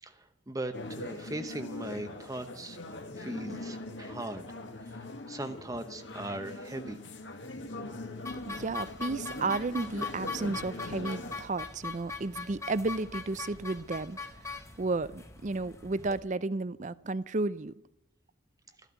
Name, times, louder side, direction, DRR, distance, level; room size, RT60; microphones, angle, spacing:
voice 1, 0.0-4.6 4.8-7.0, right 1 dB, 20° right, 0.9 m, -39 dB
sound 1, 0.7-11.4, left 2 dB, 65° left, 2.0 m, -42 dB
sound 2, 8.3-16.2, left 4 dB, 15° left, 1.2 m, -41 dB
voice 2, 8.5-14.2 14.8-17.7, right 3 dB, 40° right, 0.5 m, -33 dB
14.0 x 12.5 x 8.1 m
head